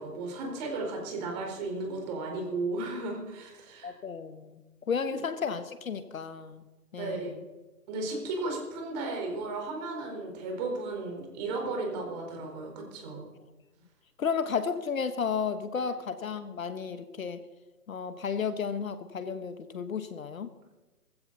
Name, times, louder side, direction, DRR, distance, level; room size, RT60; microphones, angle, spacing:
voice 1, 0.0-3.9 5.1-5.2 6.9-7.3 7.9-13.3, right 3 dB, 25° right, 1 dB, 4.4 m, -35 dB
voice 2, 3.8-6.7 6.9-7.4 14.2-17.4 17.9-20.5, left 6 dB, 60° left, 11 dB, 1.3 m, -33 dB
19.0 x 15.5 x 4.1 m, 1.2 s
figure-of-eight pair, 145°, 47 cm